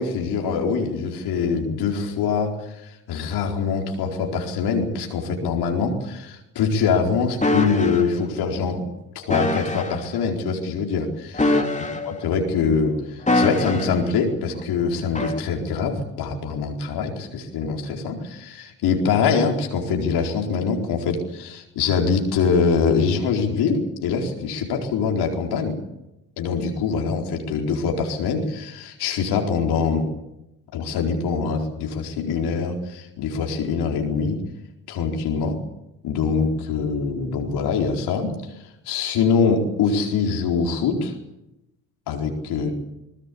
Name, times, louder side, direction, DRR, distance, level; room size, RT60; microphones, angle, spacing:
voice 1, 0.0-8.8 9.1-11.7 12.0-25.8 26.4-30.0 30.7-34.4 34.9-35.6 36.0-38.3 38.9-41.1 42.1-42.7, left 5 dB, 70° left, 2 dB, 4.5 m, -24 dB
sound 1, 7.4-8.0 9.3-10.0 11.3-12.2 13.3-14.0 15.1-15.4, left 2 dB, 15° left, 4.1 m, -23 dB
22.5 x 20.0 x 8.5 m, 0.91 s
hypercardioid pair, 60°, 41 cm